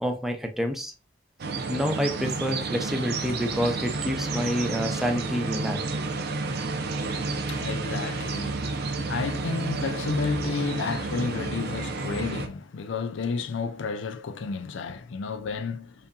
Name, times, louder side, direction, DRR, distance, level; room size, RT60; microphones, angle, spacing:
voice 1, 0.0-0.9 1.7-5.8, equal, ahead, 0.6 m, -28 dB
sound 1, 1.4-12.5, right 3 dB, 60° right, 0.6 m, -30 dB
voice 2, 7.3-15.9, left 4 dB, 70° left, 0.5 m, -31 dB
5.4 x 2.6 x 2.2 m
head